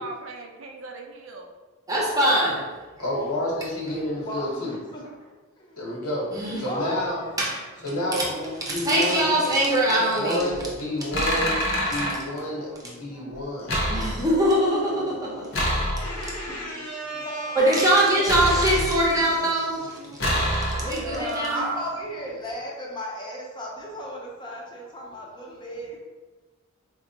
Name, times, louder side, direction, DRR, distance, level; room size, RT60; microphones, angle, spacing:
voice 1, 0.0-1.5 20.8-21.6, right 3 dB, 60° right, 3 dB, 0.5 m, -38 dB
voice 2, 1.9-2.7 6.3-6.7 7.4-7.9 8.2-8.3 8.7-10.5 11.9-12.0 13.9-15.5 16.0-16.3 17.6-20.5 20.8-21.8, right 1 dB, 15° right, -5 dB, 0.7 m, -23 dB
voice 3, 2.9-4.8 5.8-6.3 6.6-7.2 7.8-9.4 10.1-14.0 16.0-17.8, left 1 dB, 90° left, -4 dB, 1.2 m, -30 dB
voice 4, 4.2-5.0 5.6-5.8 6.5-7.4 16.5-16.6 17.1-17.6 18.2-18.3 21.1-26.0, left 1 dB, 20° left, -2 dB, 0.6 m, -36 dB
sound 1, 10.5-10.6 11.1-12.2 13.7-14.5 15.5-16.4 18.3-19.2 20.2-21.1, equal, 60° left, 0.9 m, -26 dB
4.4 x 2.4 x 2.8 m, 1.3 s
head